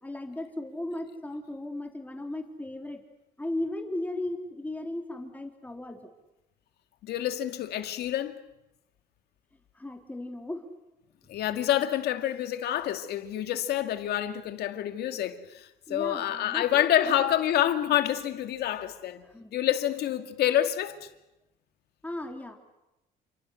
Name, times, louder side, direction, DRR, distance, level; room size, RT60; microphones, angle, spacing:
voice 1, 0.0-3.0 3.4-6.1 9.7-10.7 15.9-17.1 19.2-19.5 22.0-22.6, left 1 dB, 10° left, 3.3 m, -36 dB
voice 2, 7.0-8.4 11.3-19.2 19.5-21.1, left 12 dB, 70° left, 2.3 m, -27 dB
29.5 x 27.0 x 6.5 m
cardioid pair, 110°, 17 cm